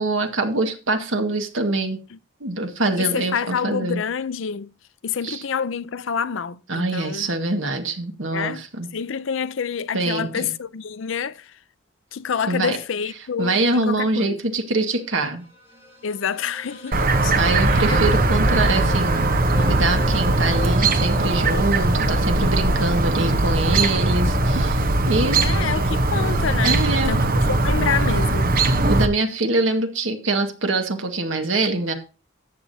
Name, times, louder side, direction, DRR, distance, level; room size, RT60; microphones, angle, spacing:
voice 1, 0.0-2.0 2.4-4.0 5.2-5.4 6.7-8.9 9.9-10.5 12.5-12.8 13.4-15.4 17.3-19.3 19.6-25.4 26.6-27.2 28.9-31.9, right 2 dB, 65° right, 1.7 m, -24 dB
voice 2, 3.0-4.7 5.0-7.3 8.3-8.6 8.9-11.5 12.1-14.4 16.0-17.4 17.7-18.2 25.3-27.2 27.5-28.5, left 7 dB, 65° left, 0.5 m, -27 dB
sound 1, 15.2-24.0, equal, 10° right, 5.5 m, -39 dB
Chirp tweet, 16.9-29.1, right 2 dB, 45° right, 1.0 m, -20 dB
14.0 x 8.6 x 2.8 m
head